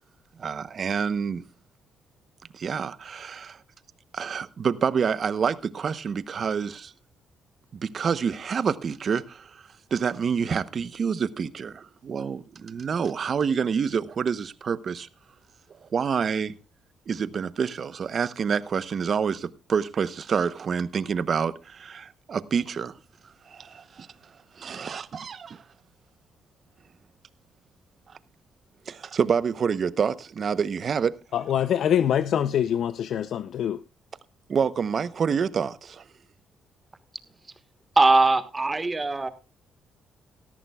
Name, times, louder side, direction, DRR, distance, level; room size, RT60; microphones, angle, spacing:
voice 1, 0.4-1.4 2.5-3.6 4.1-6.9 7.7-9.6 9.9-15.1 15.9-16.5 17.1-23.0 23.5-24.1 24.6-25.6 28.9-31.1 34.5-36.0, right 6 dB, 50° right, 0.8 m, -27 dB
voice 2, 31.3-33.8, left 9 dB, 70° left, 0.5 m, -24 dB
voice 3, 37.9-39.3, right 3 dB, 20° right, 1.5 m, -20 dB
17.5 x 13.5 x 2.3 m
cardioid pair, 90°, 0 cm